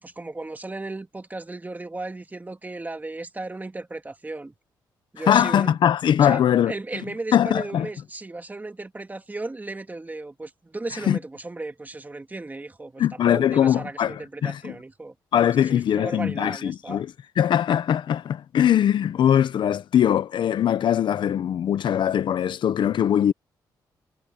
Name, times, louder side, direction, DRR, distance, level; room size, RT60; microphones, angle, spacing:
voice 1, 0.0-4.5 5.1-5.8 6.2-15.2 15.6-17.0, right 2 dB, 20° right, 2.3 m, -35 dB
voice 2, 5.2-6.7 7.3-7.9 11.1-11.2 13.0-14.8 15.3-23.3, left 10 dB, 70° left, 1.0 m, -21 dB
cardioid pair, 80°, 8 cm